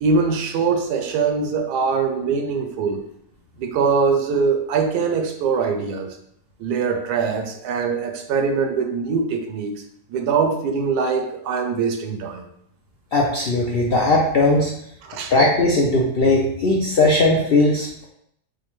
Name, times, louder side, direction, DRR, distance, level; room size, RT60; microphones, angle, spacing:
voice 1, 0.0-3.0 3.6-6.1 6.6-9.8 10.1-12.5 15.0-15.3, right 5 dB, 90° right, 4 dB, 1.2 m, -22 dB
voice 2, 13.1-14.8 15.3-18.1, left 2 dB, 70° left, -2 dB, 0.5 m, -18 dB
5.1 x 2.1 x 3.0 m, 0.73 s
omnidirectional pair, 1.6 m